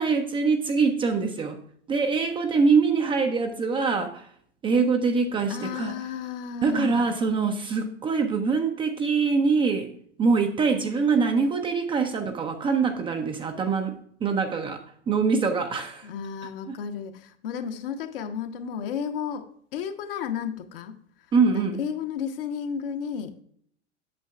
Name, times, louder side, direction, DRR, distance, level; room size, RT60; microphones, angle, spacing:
voice 1, 0.0-1.6 1.9-4.3 4.6-6.0 6.6-9.9 10.2-14.8 15.1-16.1 16.7-16.8 21.3-21.8, right 4 dB, 15° right, 5 dB, 0.5 m, -24 dB
voice 2, 5.5-7.1 16.0-19.4 19.7-21.0 21.5-23.4, left 7 dB, 50° left, 7 dB, 0.9 m, -33 dB
8.5 x 7.2 x 2.3 m, 0.63 s
figure-of-eight pair, 95°, 35 cm